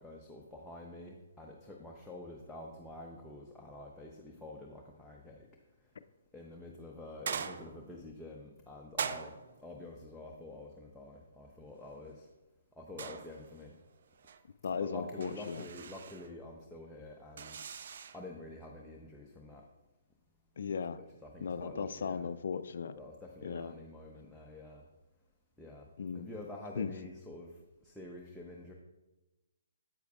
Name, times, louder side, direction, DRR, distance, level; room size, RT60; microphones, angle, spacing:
voice 1, 0.0-5.5 6.3-12.3 12.7-13.8 14.6-17.6 18.1-19.6 20.9-22.3 22.9-24.8 25.6-25.9 26.1-27.5 27.8-28.7, left 2 dB, 5° left, -2 dB, 0.6 m, -48 dB
sound 1, 7.3-8.0 9.0-9.7 13.0-13.7 14.0-14.4 15.2-16.3 17.4-18.3, right 7 dB, 55° right, 0.4 m, -41 dB
voice 2, 14.6-15.6 20.6-21.0 21.4-23.0 23.4-23.7 26.0-26.3 26.8-26.9, left 6 dB, 60° left, 12 dB, 0.3 m, -36 dB
8.1 x 8.0 x 2.3 m, 1.1 s
figure-of-eight pair, 135°, 0 cm